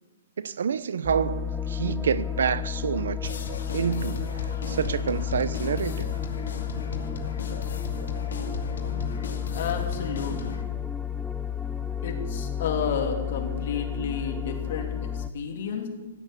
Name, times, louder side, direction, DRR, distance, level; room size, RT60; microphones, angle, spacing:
voice 1, 0.4-3.4 3.7-4.3 4.7-6.1, right 7 dB, 75° right, 0.8 m, -28 dB
sound 1, 1.0-15.3, left 8 dB, ahead, 0.4 m, -32 dB
sound 2, 3.2-10.6, left 4 dB, 80° left, 2.4 m, -37 dB
voice 2, 9.5-10.6 12.0-14.9 15.1-15.9, left 6 dB, 45° left, 2.8 m, -31 dB
15.5 x 9.2 x 8.3 m
hypercardioid pair, 170°, 0 cm